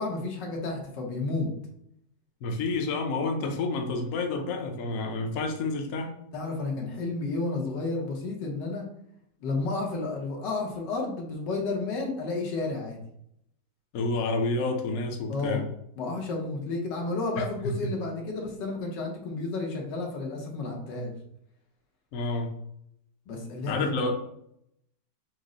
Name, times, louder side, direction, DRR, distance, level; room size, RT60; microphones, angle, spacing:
voice 1, 0.0-1.5 6.3-8.8 9.4-13.0 15.3-15.6 16.0-21.1 23.3-24.0, left 3 dB, 85° left, 0 dB, 1.6 m, -31 dB
voice 2, 2.4-6.1 13.9-15.6 17.4-17.5 22.1-22.5 23.7-24.1, left 3 dB, 60° left, 3 dB, 0.9 m, -29 dB
6.1 x 2.1 x 3.8 m, 0.74 s
omnidirectional pair, 1.8 m